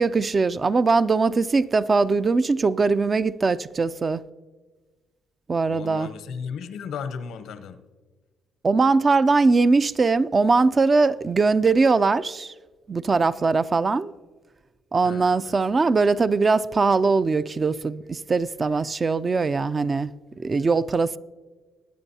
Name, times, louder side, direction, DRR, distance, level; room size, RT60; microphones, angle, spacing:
voice 1, 0.0-4.2 5.5-6.1 8.6-12.5 12.9-14.1 14.9-20.1 20.4-21.2, right 4 dB, 35° right, 0.4 m, -21 dB
voice 2, 5.7-7.8 15.0-15.6, left 6 dB, 80° left, 0.7 m, -35 dB
21.5 x 9.0 x 2.8 m
cardioid pair, 90°, 0 cm